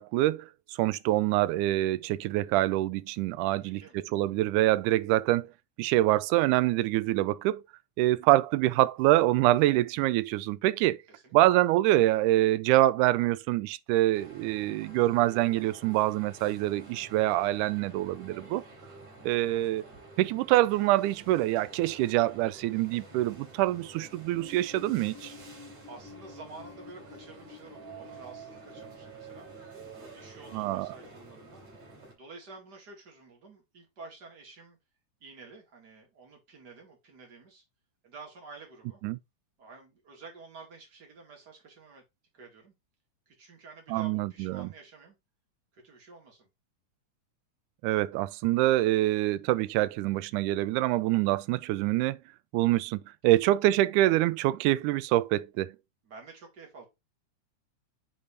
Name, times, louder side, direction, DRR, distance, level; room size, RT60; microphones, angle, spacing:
voice 1, 0.0-5.5 5.8-7.6 8.0-11.0 11.3-18.6 19.2-19.9 20.2-25.3 30.5-30.9 39.0-39.2 43.9-44.7 47.8-52.2 52.5-55.8, right 16 dB, 80° right, 2.0 m, -25 dB
voice 2, 3.5-4.0 11.1-11.3 25.9-29.5 29.9-31.6 32.1-34.8 35.2-37.6 38.0-39.0 39.6-42.0 42.3-42.7 43.3-45.2 45.7-46.5 56.0-56.9, right 4 dB, 35° right, 2.6 m, -50 dB
sound 1, 14.1-32.1, right 2 dB, 60° right, 4.2 m, -49 dB
8.7 x 4.1 x 3.3 m
omnidirectional pair, 3.6 m